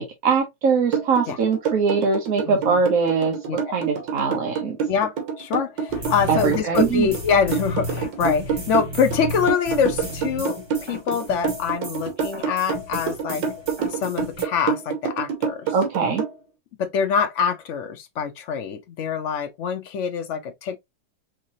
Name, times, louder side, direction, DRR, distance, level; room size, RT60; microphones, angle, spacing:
voice 1, 0.0-3.4 3.7-4.8 6.3-7.1 15.7-16.2, right 5 dB, 55° right, 1.1 m, -22 dB
sound 1, 0.9-16.3, right 7 dB, 80° right, 1.8 m, -27 dB
voice 2, 2.5-2.8 3.5-3.6 4.9-13.4 13.9-15.7 16.8-20.8, left 7 dB, 75° left, 0.6 m, -25 dB
sound 2, 5.9-14.4, left 1 dB, 20° right, 0.7 m, -33 dB
5.6 x 2.9 x 2.7 m
omnidirectional pair, 2.0 m